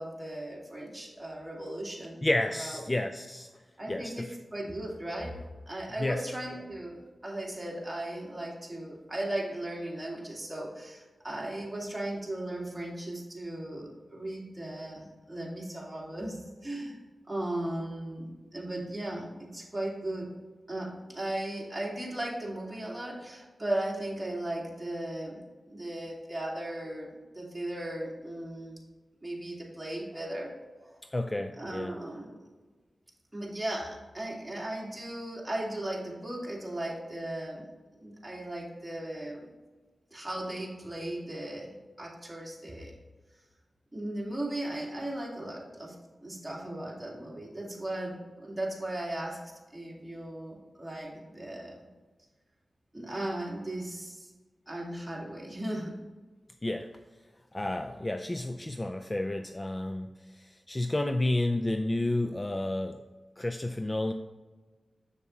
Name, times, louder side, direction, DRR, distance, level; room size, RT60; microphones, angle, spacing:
voice 1, 0.0-2.8 3.8-5.3 5.7-17.0 17.3-20.3 20.7-25.4 25.7-28.8 29.2-30.5 30.8-31.0 31.6-32.4 33.3-37.6 38.0-39.5 40.1-41.7 42.0-42.9 43.9-46.0 46.2-49.4 49.7-51.7 52.9-54.3 54.7-55.9, right 1 dB, 10° right, -4 dB, 2.4 m, -37 dB
voice 2, 2.2-3.5 3.9-4.3 6.0-6.2 31.1-32.0 56.6-56.9 57.5-60.1 60.4-63.0 63.4-64.1, left 1 dB, 20° left, 6 dB, 0.4 m, -31 dB
7.1 x 6.9 x 3.2 m, 1.3 s
wide cardioid pair, 90°, 0 cm